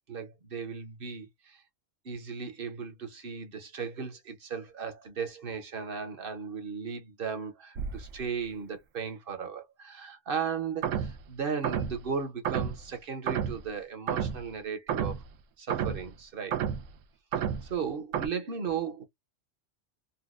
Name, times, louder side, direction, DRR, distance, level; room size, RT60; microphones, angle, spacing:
voice 1, 0.1-1.6 2.0-15.2 15.6-16.6 17.4-19.0, right 6 dB, 50° right, 1.0 m, -36 dB
sound 1, 7.8-8.2 10.8-11.2 11.6-12.0 12.4-12.8 13.3-13.6 14.1-14.4 14.9-15.3 15.7-16.1 16.5-16.9 17.3-17.7 18.1-18.3, right 8 dB, 85° right, 1.0 m, -31 dB
4.0 x 2.1 x 2.4 m
omnidirectional pair, 1.3 m